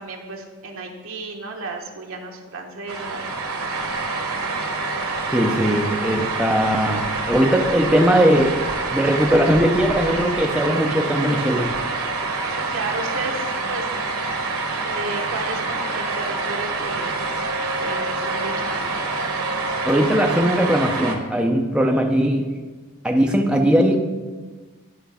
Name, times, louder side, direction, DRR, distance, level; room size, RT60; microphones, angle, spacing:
voice 1, 0.0-3.3 12.5-13.9 14.9-17.3 17.8-19.0, right 3 dB, 70° right, 2 dB, 1.0 m, -33 dB
sound 1, 2.9-21.2, right 3 dB, 85° right, 1.1 m, -26 dB
voice 2, 5.3-8.6 8.9-11.7 19.8-22.4 23.0-24.0, equal, 5° right, 1 dB, 0.5 m, -19 dB
11.5 x 4.6 x 3.4 m, 1.3 s
head